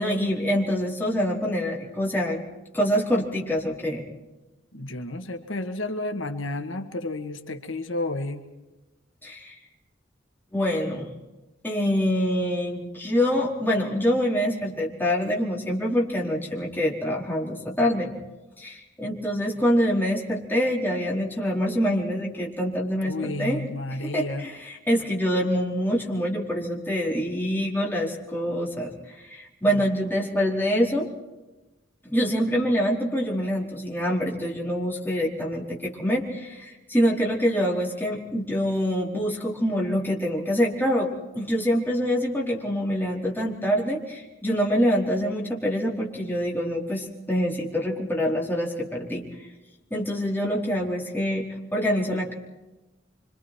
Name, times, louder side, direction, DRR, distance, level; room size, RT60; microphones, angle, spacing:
voice 1, 0.0-2.4 2.7-4.1 9.2-9.6 10.5-11.1 11.6-18.1 18.6-23.6 23.9-31.1 32.0-41.1 41.3-49.2 49.9-52.3, equal, 10° left, -2 dB, 4.6 m, -25 dB
voice 2, 4.7-8.4 23.0-24.4 29.6-29.9, left 2 dB, 85° left, 6 dB, 1.9 m, -31 dB
27.5 x 25.0 x 4.6 m, 1.1 s
head